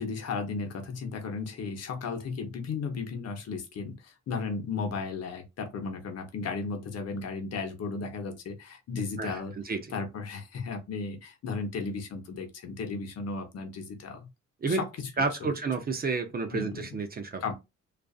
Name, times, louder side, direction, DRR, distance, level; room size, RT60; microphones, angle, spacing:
voice 1, 0.0-9.5 9.9-14.3 14.7-15.5 16.5-17.0 17.4-17.5, left 4 dB, 55° left, 0.9 m, -35 dB
voice 2, 9.2-9.8 14.6-14.8 15.2-17.4, right 4 dB, 30° right, 0.5 m, -30 dB
2.4 x 2.4 x 2.4 m
cardioid pair, 90°, 30 cm